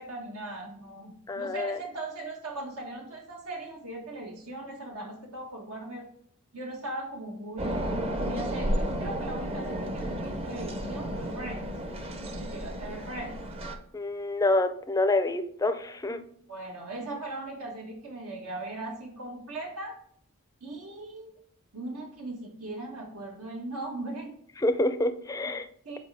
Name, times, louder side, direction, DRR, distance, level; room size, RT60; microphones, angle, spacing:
voice 1, 0.0-6.1 6.5-11.7 12.2-13.4 16.5-20.0 20.6-21.4 21.7-24.3 25.4-25.5 25.8-26.0, right 2 dB, 85° right, 0 dB, 1.6 m, -39 dB
voice 2, 1.3-1.8 13.9-16.2 24.6-25.7, left 2 dB, 15° left, 10 dB, 0.4 m, -27 dB
sound 1, 7.6-13.8, equal, 25° right, 0.6 m, -32 dB
7.5 x 4.6 x 3.4 m, 0.63 s
head